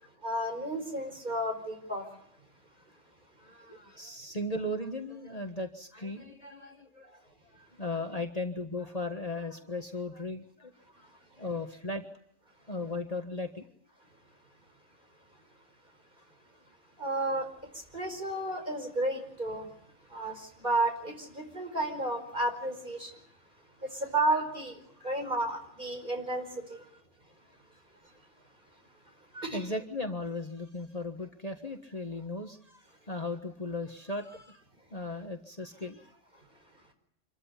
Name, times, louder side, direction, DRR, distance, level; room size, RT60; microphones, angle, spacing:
voice 1, 0.2-2.1 17.0-19.7 20.1-23.2 23.8-26.9 28.0-28.1 29.3-29.7, right 1 dB, 40° right, 5.0 m, -32 dB
voice 2, 3.4-7.2 7.5-11.1 11.4-12.0 12.7-13.6 29.1-29.2 29.5-34.6 34.9-36.1, left 2 dB, 30° left, 1.5 m, -37 dB
26.5 x 14.0 x 9.9 m
omnidirectional pair, 1.2 m